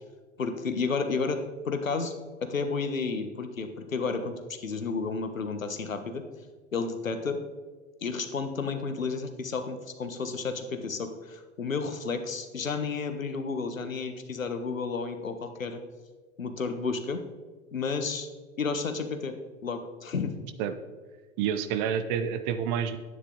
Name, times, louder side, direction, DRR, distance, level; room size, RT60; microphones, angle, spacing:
voice 1, 0.4-1.4 1.6-2.1 2.4-6.2 6.7-7.4 8.0-15.8 16.4-17.2 17.7-18.3 18.6-19.3 19.6-20.3, left 4 dB, 80° left, 8 dB, 1.3 m, -31 dB
voice 2, 21.4-23.0, right 8 dB, 35° right, 10 dB, 0.8 m, -28 dB
11.0 x 9.4 x 3.9 m, 1.3 s
figure-of-eight pair, 95°, 39 cm